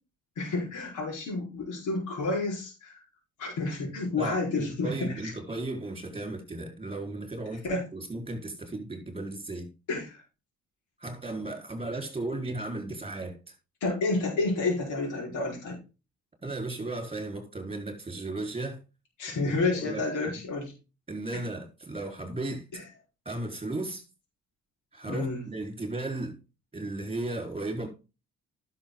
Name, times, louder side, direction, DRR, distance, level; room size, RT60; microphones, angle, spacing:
voice 1, 0.4-3.0 3.4-5.3 7.6-7.9 9.9-10.2 13.8-15.8 19.2-20.7 22.7-22.8 25.1-25.4, left 3 dB, 80° left, 4.6 m, -30 dB
voice 2, 4.2-7.7 7.9-9.7 11.0-13.5 16.4-18.8 19.3-20.4 21.1-22.6 23.2-24.0 24.9-26.4 26.7-27.9, right 2 dB, 20° right, 4.4 m, -35 dB
11.0 x 6.6 x 3.9 m
cardioid pair, 90°, 30 cm